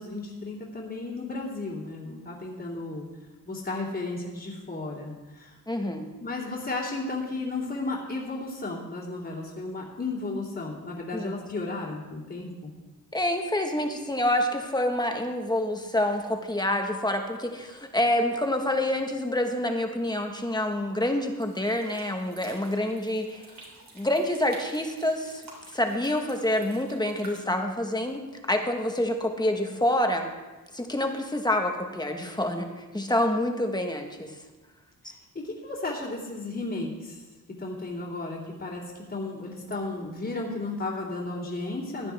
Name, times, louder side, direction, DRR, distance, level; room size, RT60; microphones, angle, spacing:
voice 1, 0.0-3.1 3.4-5.6 6.2-12.7 35.0-37.2 37.6-42.1, left 2 dB, 35° left, -8 dB, 2.5 m, -34 dB
voice 2, 5.7-6.1 11.1-11.3 13.1-23.4 23.9-25.4 25.7-28.2 28.5-30.3 30.7-32.7 32.9-34.3, left 1 dB, 10° left, 4 dB, 1.2 m, -27 dB
sound 1, 21.4-27.4, right 2 dB, 70° right, 3.5 m, -50 dB
16.0 x 11.0 x 3.5 m, 1.2 s
wide cardioid pair, 125°, 35 cm